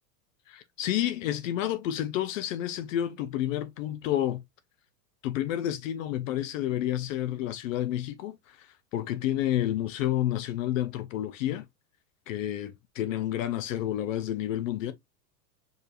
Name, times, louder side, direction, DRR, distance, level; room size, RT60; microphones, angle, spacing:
voice 1, 0.5-4.4 5.2-11.6 12.3-14.9, left 12 dB, 55° left, 0.5 m, -30 dB
4.8 x 3.1 x 2.4 m
supercardioid pair, 170°, 48 cm